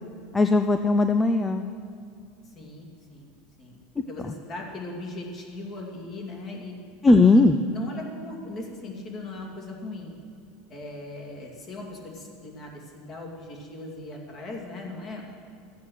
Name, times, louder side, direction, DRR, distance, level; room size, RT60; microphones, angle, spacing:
voice 1, 0.3-1.7 4.0-4.3 7.0-7.6, left 2 dB, 10° left, 8 dB, 0.4 m, -19 dB
voice 2, 2.4-3.3 3.6-3.8 4.1-6.8 7.1-7.4 7.7-10.1 10.7-15.2, left 2 dB, 35° left, 0 dB, 2.4 m, -39 dB
14.0 x 8.3 x 6.4 m, 2.5 s
supercardioid pair, 130°, 0 cm